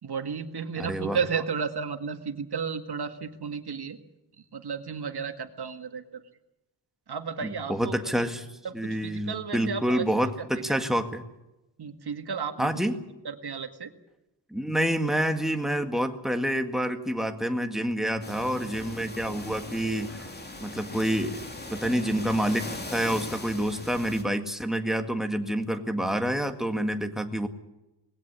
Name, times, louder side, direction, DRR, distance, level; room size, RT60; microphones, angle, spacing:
voice 1, 0.0-4.0 4.4-6.2 7.1-8.2 8.6-10.1 10.4-10.8 11.8-12.7 13.3-13.9, right 6 dB, 65° right, 7 dB, 2.0 m, -33 dB
voice 2, 0.8-1.2 7.4-8.5 8.7-11.2 12.6-13.0 14.5-20.3 20.6-21.4 21.7-27.5, equal, ahead, 5 dB, 1.8 m, -28 dB
sound 1, 18.2-24.2, left 2 dB, 25° left, 2.8 m, -39 dB
20.5 x 17.0 x 9.5 m, 0.96 s
wide cardioid pair, 150°, 41 cm